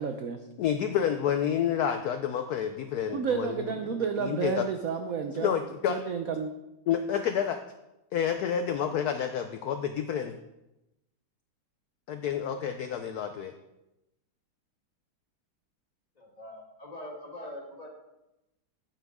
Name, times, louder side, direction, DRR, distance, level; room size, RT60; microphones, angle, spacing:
voice 1, 0.0-0.4 3.1-5.5 5.9-6.5, right 6 dB, 75° right, 6 dB, 0.8 m, -31 dB
voice 2, 0.6-4.6 5.3-6.0 6.9-7.6 8.1-10.4 12.1-13.5, left 8 dB, 85° left, 7 dB, 0.8 m, -29 dB
voice 3, 16.2-17.9, left 1 dB, 20° left, -1 dB, 1.5 m, -43 dB
9.5 x 9.0 x 3.6 m, 0.94 s
omnidirectional pair, 2.2 m